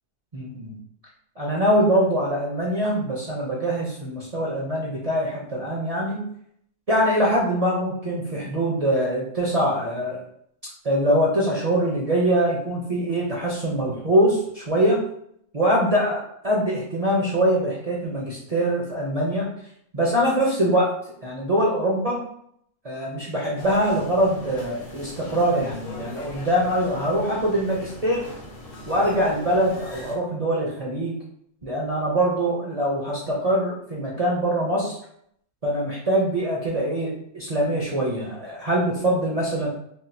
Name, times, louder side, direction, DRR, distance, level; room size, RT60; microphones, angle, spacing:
voice 1, 0.3-0.7 1.4-6.2 6.9-10.2 10.8-15.0 15.5-19.5 19.9-20.9 21.2-22.2 22.8-28.3 28.9-31.2 31.6-35.0 35.6-39.7, right 1 dB, 40° right, -5 dB, 0.5 m, -23 dB
sound 1, 23.6-30.2, left 1 dB, 50° left, 0.7 m, -40 dB
3.6 x 2.4 x 2.6 m, 0.69 s
omnidirectional pair, 1.5 m